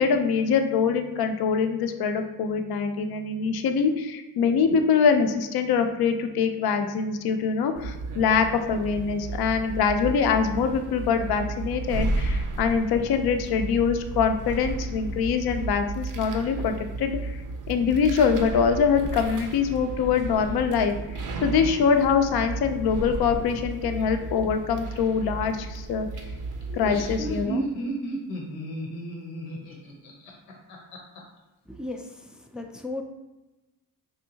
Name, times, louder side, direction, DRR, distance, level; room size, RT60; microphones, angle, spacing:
voice 1, 0.0-17.4 17.7-21.0 21.4-26.1 26.7-27.7, left 6 dB, 55° left, 6 dB, 0.5 m, -24 dB
sound 1, 7.8-27.5, right 3 dB, 45° right, 0.6 m, -33 dB
Laughter, 26.6-31.2, right 1 dB, 90° left, 0.8 m, -33 dB
voice 2, 31.7-33.0, left 2 dB, ahead, 3 dB, 0.3 m, -36 dB
3.5 x 2.7 x 2.8 m, 1.1 s
supercardioid pair, 50°, 46 cm